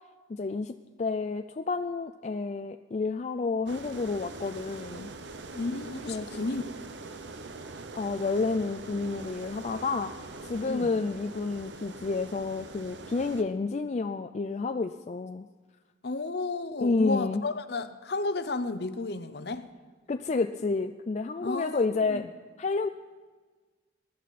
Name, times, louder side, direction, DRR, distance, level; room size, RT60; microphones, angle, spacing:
voice 1, 0.3-0.7 1.0-5.1 6.1-6.3 7.9-10.1 10.4-15.5 16.8-17.4 20.1-22.3 22.6-22.9, left 3 dB, 35° left, 7 dB, 0.4 m, -30 dB
sound 1, 3.7-13.4, right 3 dB, 75° right, 0.9 m, -43 dB
voice 2, 5.5-6.6 10.7-11.0 16.0-19.7 21.4-22.2, left 3 dB, 60° left, 11 dB, 0.7 m, -33 dB
21.5 x 11.0 x 4.2 m, 1.4 s
head